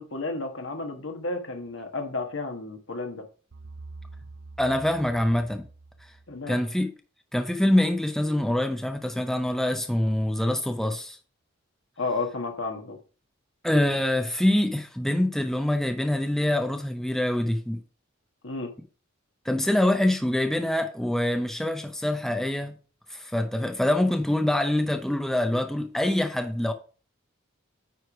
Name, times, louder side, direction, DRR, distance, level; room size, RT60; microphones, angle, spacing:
voice 1, 0.0-3.3 6.3-6.6 12.0-13.0 18.4-18.7, left 3 dB, 65° left, 1.4 m, -32 dB
sound 1, 3.5-6.6, right 3 dB, 75° right, 0.7 m, -46 dB
voice 2, 4.6-5.6 6.5-6.9 7.3-11.2 13.6-17.8 19.4-22.7 23.1-26.7, left 1 dB, ahead, 0.5 m, -25 dB
9.3 x 3.3 x 5.8 m
head